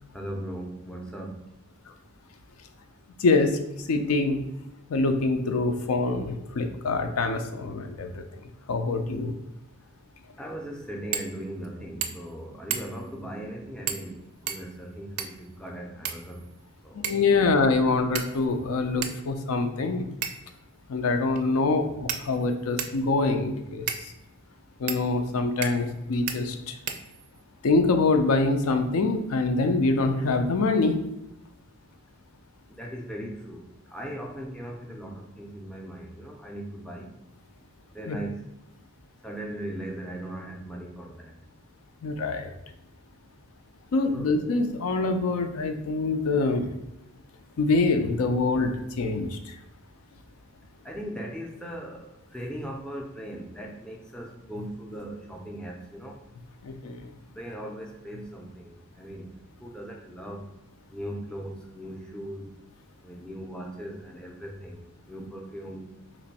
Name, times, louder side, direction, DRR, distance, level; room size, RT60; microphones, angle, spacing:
voice 1, 0.1-1.4 10.4-16.4 16.8-17.0 32.7-33.6 33.9-37.1 37.9-38.4 39.2-41.3 44.1-44.3 50.8-56.2 57.4-59.3 59.6-60.4 60.9-62.4 63.0-64.8 65.1-65.9, right 1 dB, 5° left, -1 dB, 0.4 m, -38 dB
voice 2, 3.9-4.4 4.9-8.1 8.7-9.3 17.0-20.0 20.9-23.8 24.8-26.5 27.6-31.0 38.1-38.2 42.0-42.5 43.9-46.7 47.6-49.3 56.7-56.9, left 3 dB, 75° left, 6 dB, 0.4 m, -24 dB
sound 1, 11.1-11.3 11.6-11.7 12.0-12.3 12.7-13.1 13.9-14.1 14.5-15.5 16.0-16.6 17.0-17.3 18.2-18.6 19.0-19.2 20.2-20.6 21.4-21.5 22.1-23.0 23.9-24.1 24.9-25.0 25.6-26.0 26.3-26.4 26.9-27.4, right 8 dB, 90° right, 0.4 m, -33 dB
3.1 x 2.5 x 4.0 m, 0.88 s
head